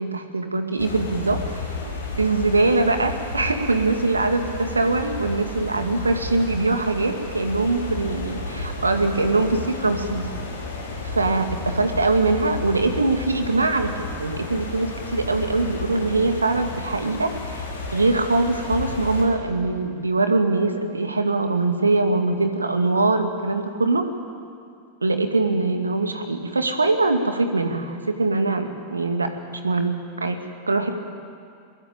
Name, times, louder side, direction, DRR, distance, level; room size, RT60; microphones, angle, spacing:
voice 1, 0.0-1.7 2.2-10.3 11.0-17.7 17.9-24.1 25.0-30.4 30.7-31.0, right 3 dB, 80° right, 6 dB, 2.1 m, -22 dB
sound 1, 0.8-19.2, left 2 dB, 65° left, 5.3 m, -33 dB
22.5 x 21.5 x 9.1 m, 2.4 s
figure-of-eight pair, 90°, 0 cm